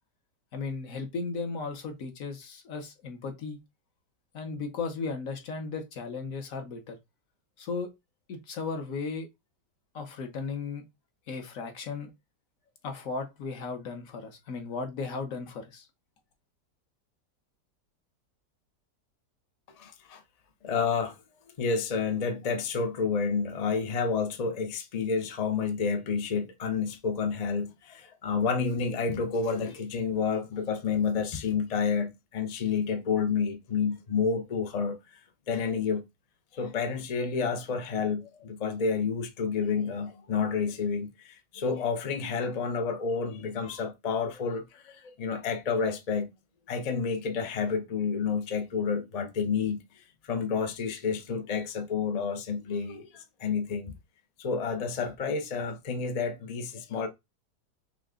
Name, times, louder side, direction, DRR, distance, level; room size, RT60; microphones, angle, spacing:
voice 1, 0.5-3.6 4.3-7.0 7.6-7.9 8.3-9.3 9.9-10.8 11.3-12.1 12.8-15.9, left 4 dB, 55° left, 1.3 m, -35 dB
voice 2, 19.8-20.2 20.6-21.2 21.6-35.0 35.5-36.1 36.5-46.3 46.7-53.9 54.4-57.1, left 5 dB, 85° left, 0.3 m, -30 dB
5.7 x 2.4 x 3.6 m
omnidirectional pair, 1.9 m